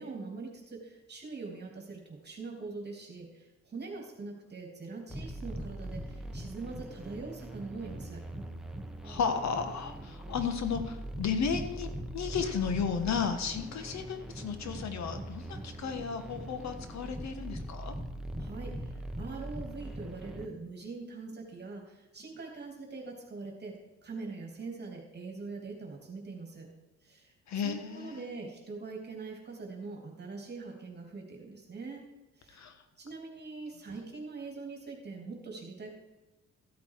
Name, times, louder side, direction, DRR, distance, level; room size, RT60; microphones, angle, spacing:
voice 1, 0.0-8.2 18.4-23.7 24.0-26.7 27.0-32.0 32.4-32.6 33.0-36.0, right 4 dB, 35° right, 0 dB, 2.9 m, -43 dB
sound 1, 5.1-20.4, right 1 dB, ahead, 1.5 m, -41 dB
voice 2, 9.0-17.9 27.5-28.2 32.5-32.7, left 6 dB, 65° left, 8 dB, 1.7 m, -33 dB
14.5 x 8.3 x 4.8 m, 1.1 s
cardioid pair, 90°, 30 cm